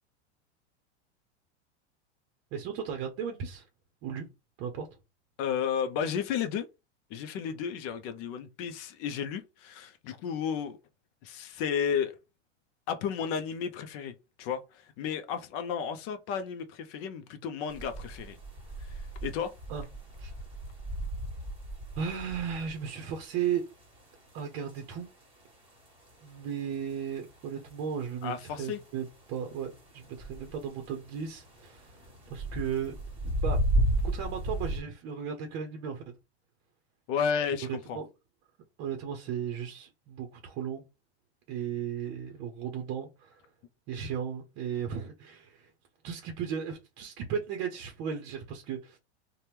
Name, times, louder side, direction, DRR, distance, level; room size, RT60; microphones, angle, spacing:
voice 1, 2.5-3.6 4.0-4.3 4.6-4.9 19.7-19.8 20.2-20.3 22.0-23.7 24.3-25.1 26.2-31.9 32.3-32.9 33.2-33.6 34.0-36.0 37.9-38.1 38.8-40.8 41.5-43.4 43.9-45.7 46.0-49.0, right 7 dB, 45° right, 0.7 m, -35 dB
voice 2, 5.4-6.7 7.1-10.8 11.2-12.2 12.9-14.1 14.4-18.4 18.8-19.5 28.2-28.8 37.1-38.0, left 7 dB, 40° left, 0.5 m, -33 dB
sound 1, 17.7-34.8, right 1 dB, 15° right, 1.4 m, -35 dB
2.8 x 2.2 x 3.4 m
hypercardioid pair, 115°, 34 cm